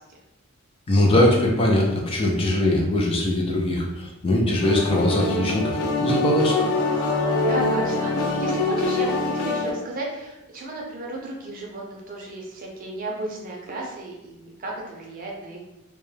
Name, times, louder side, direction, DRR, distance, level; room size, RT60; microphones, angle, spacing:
voice 1, 0.9-6.6, left 1 dB, 25° left, -1 dB, 0.3 m, -21 dB
sound 1, 4.6-9.7, left 2 dB, 85° left, 0.4 m, -24 dB
voice 2, 7.4-15.6, right 2 dB, 40° right, -1 dB, 0.5 m, -34 dB
2.2 x 2.0 x 3.1 m, 0.96 s
head